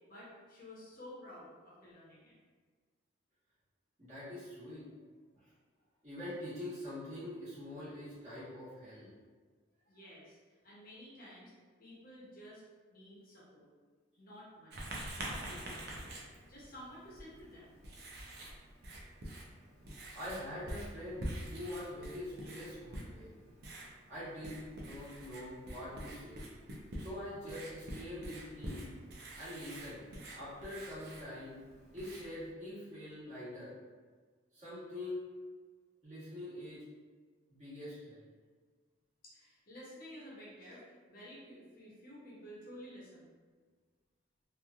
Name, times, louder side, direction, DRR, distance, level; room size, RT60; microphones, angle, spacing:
voice 1, 0.1-2.4 9.9-10.4 10.6-11.5 11.8-12.6 12.9-13.7 14.2-16.2 16.5-17.7 39.2-43.3, equal, 45° left, -6 dB, 0.7 m, -52 dB
voice 2, 4.0-4.9 6.0-9.1 20.1-23.3 24.1-26.4 27.0-28.9 29.4-30.0 30.3-31.5 31.9-33.7 34.5-35.3 36.0-36.8 37.5-38.2, left 1 dB, 35° right, -11 dB, 1.2 m, -44 dB
Writing, 14.7-32.5, right 1 dB, 50° right, 0.5 m, -47 dB
3.0 x 2.5 x 2.3 m, 1.5 s
head